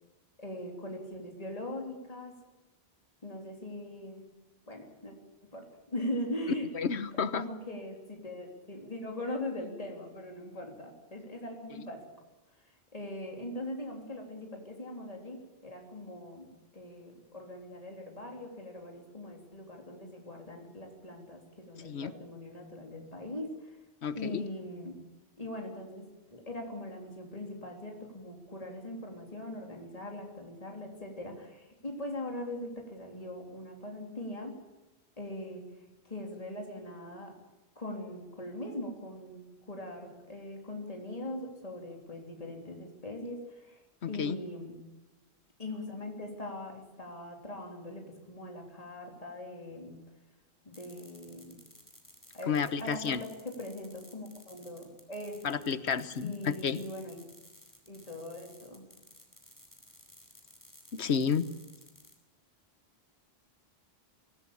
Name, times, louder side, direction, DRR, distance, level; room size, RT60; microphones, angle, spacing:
voice 1, 0.4-2.4 3.2-4.3 4.7-5.1 5.5-6.7 7.3-12.1 12.6-23.8 24.1-25.0 25.4-26.1 26.3-34.6 35.2-35.7 36.0-37.4 37.7-44.8 45.6-50.0 50.6-51.6 52.3-55.7 56.2-57.3 57.9-58.9, left 1 dB, 35° left, 1 dB, 3.4 m, -41 dB
voice 2, 6.7-7.4 21.8-22.1 24.0-24.4 44.0-44.4 52.5-53.2 55.4-56.8 60.9-61.4, left 6 dB, 85° left, 14 dB, 1.3 m, -31 dB
sound 1, 50.7-62.2, left 1 dB, 15° left, 4.5 m, -56 dB
23.5 x 17.5 x 8.6 m, 1.0 s
omnidirectional pair, 1.1 m